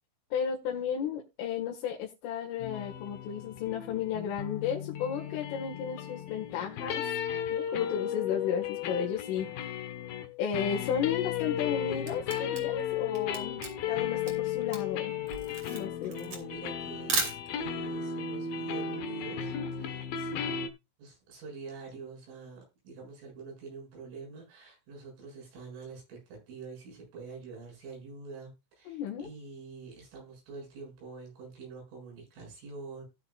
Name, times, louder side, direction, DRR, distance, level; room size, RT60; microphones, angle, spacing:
voice 1, 0.3-7.1 7.5-9.5 10.4-15.1 15.7-16.1 28.9-29.3, left 8 dB, 85° left, -1 dB, 4.4 m, -33 dB
sound 1, 2.6-20.7, left 8 dB, 65° left, 2.5 m, -35 dB
Camera, 11.6-17.9, right 4 dB, 40° right, 3.6 m, -36 dB
voice 2, 15.5-17.3 17.6-20.5 21.0-33.1, right 4 dB, 80° right, -1 dB, 10.0 m, -46 dB
18.0 x 7.2 x 2.5 m, 0.25 s
omnidirectional pair, 5.5 m